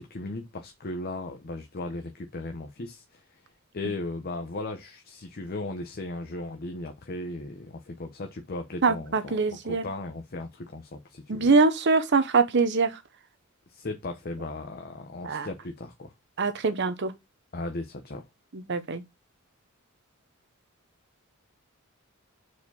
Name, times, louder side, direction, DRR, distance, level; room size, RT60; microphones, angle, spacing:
voice 1, 0.0-3.2 3.7-11.5 13.7-16.1 17.5-18.2, left 2 dB, 45° left, 0.8 m, -36 dB
voice 2, 8.8-9.8 11.3-12.9 15.2-15.5 16.4-17.1 18.5-19.0, right 4 dB, 55° right, 0.9 m, -23 dB
4.8 x 4.4 x 5.4 m
head